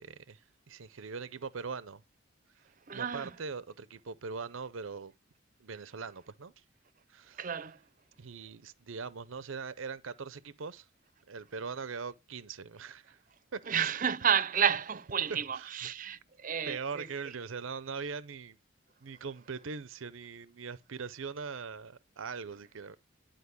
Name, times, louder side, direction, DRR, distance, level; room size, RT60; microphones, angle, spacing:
voice 1, 0.0-2.0 2.9-5.1 5.6-6.6 7.1-7.5 8.2-10.9 11.3-13.2 13.5-13.9 15.3-15.8 16.7-18.6 19.0-23.0, right 5 dB, 80° right, 0.7 m, -41 dB
voice 2, 2.9-3.3 7.4-7.8 13.7-17.1, right 8 dB, 40° right, 0.6 m, -31 dB
12.0 x 5.2 x 8.2 m
head